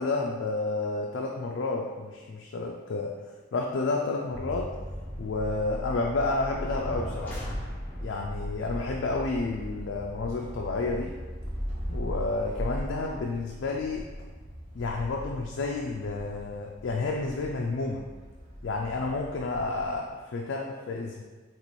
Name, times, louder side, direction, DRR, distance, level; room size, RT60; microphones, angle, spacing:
voice 1, 0.0-3.1 3.5-4.7 5.2-7.4 8.0-11.1 11.9-14.0 14.7-18.0 18.6-21.2, left 3 dB, 60° left, -1 dB, 0.3 m, -30 dB
sound 1, 4.3-20.2, equal, 30° right, 0.8 m, -39 dB
sound 2, 6.5-8.2, equal, 10° left, 0.6 m, -37 dB
4.1 x 3.0 x 3.1 m, 1.3 s
head